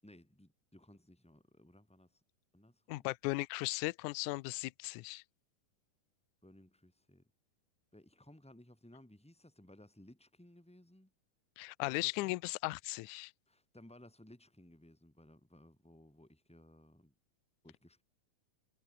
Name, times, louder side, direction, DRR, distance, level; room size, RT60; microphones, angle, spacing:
voice 1, 0.0-2.2 2.5-3.1 6.4-7.3 7.9-11.1 11.9-12.4 13.5-17.1 17.6-18.0, left 1 dB, ahead, 5.6 m, -59 dB
voice 2, 2.9-5.2 11.6-13.3, left 22 dB, 80° left, 1.8 m, -37 dB
omnidirectional pair, 4.1 m